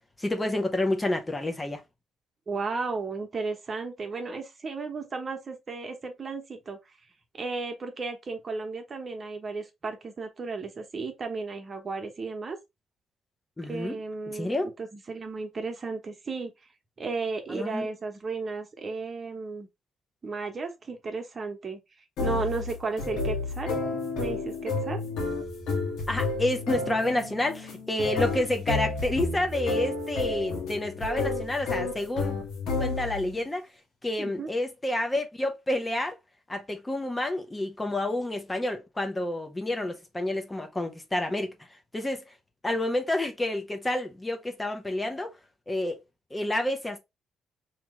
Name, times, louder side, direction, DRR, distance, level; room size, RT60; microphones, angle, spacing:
voice 1, 0.2-1.8 13.6-14.0 14.3-14.7 17.5-17.9 26.1-32.4 32.8-33.7 34.0-36.2 36.5-41.5 41.9-42.2 42.6-45.3 45.7-46.0 46.3-47.0, left 1 dB, 15° left, 0.8 m, -29 dB
voice 2, 2.5-6.8 7.4-12.6 13.6-14.5 14.8-16.5 17.0-19.7 20.2-21.8 22.2-23.8 24.2-25.0 34.2-34.5, right 4 dB, 35° right, 1.0 m, -34 dB
sound 1, 22.2-33.3, left 3 dB, 80° left, 1.4 m, -31 dB
3.1 x 2.9 x 3.6 m
cardioid pair, 90°, 0 cm